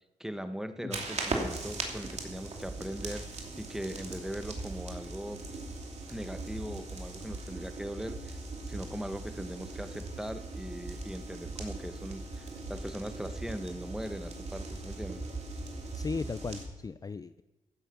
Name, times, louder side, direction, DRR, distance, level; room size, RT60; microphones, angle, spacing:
voice 1, 0.2-5.4 6.1-8.4 8.7-15.2, equal, 5° right, 9 dB, 1.1 m, -40 dB
sound 1, 0.9-16.7, right 2 dB, 55° right, 2.9 m, -39 dB
voice 2, 15.9-17.4, left 4 dB, 25° left, 14 dB, 0.4 m, -37 dB
15.0 x 9.1 x 5.9 m, 1.1 s
cardioid pair, 75°, 14 cm